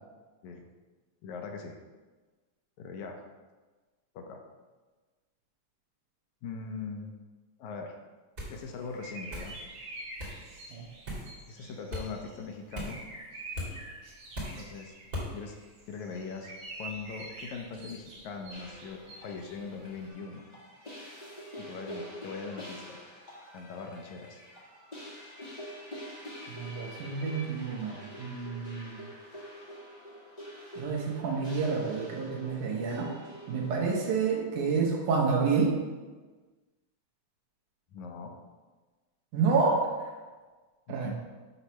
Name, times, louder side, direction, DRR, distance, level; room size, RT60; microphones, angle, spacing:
voice 1, 1.2-1.8 2.8-3.2 4.2-4.4 6.4-7.2 7.6-8.0 8.5-9.6 11.5-13.1 14.6-14.9 15.3-15.6 15.9-16.5 16.8-20.4 21.6-23.0 23.5-24.4 37.9-38.4 41.0-41.1, left 5 dB, 75° left, 3 dB, 2.0 m, -41 dB
sound 1, 8.4-8.6 9.3-9.5 10.2-10.4 11.1-11.3 11.9-12.1 12.7-13.0 13.5-13.7 14.3-14.6 15.1-15.3, left 1 dB, 35° right, 2.2 m, -37 dB
sound 2, 8.5-20.1, right 2 dB, 65° right, 2.3 m, -47 dB
sound 3, 18.5-34.4, equal, 35° left, 0.6 m, -46 dB
voice 2, 26.5-29.0 30.8-33.1 33.5-35.8 39.3-39.9 40.9-41.1, right 5 dB, 85° right, -1 dB, 2.7 m, -29 dB
8.1 x 3.1 x 5.7 m, 1.3 s
omnidirectional pair, 3.4 m